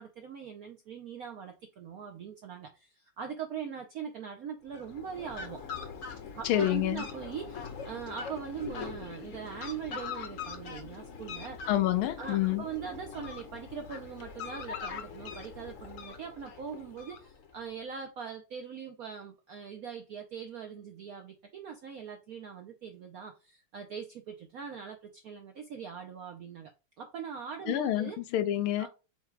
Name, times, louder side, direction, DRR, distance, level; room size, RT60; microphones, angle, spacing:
voice 1, 0.0-5.6 6.3-11.6 12.2-26.7 27.0-28.2 28.8-28.9, right 7 dB, 75° right, 0.8 m, -41 dB
Fowl, 4.6-17.7, left 6 dB, 60° left, 0.8 m, -42 dB
voice 2, 6.4-7.0 11.7-12.6 27.7-28.9, left 13 dB, 85° left, 1.5 m, -28 dB
4.7 x 2.3 x 4.5 m
omnidirectional pair, 2.3 m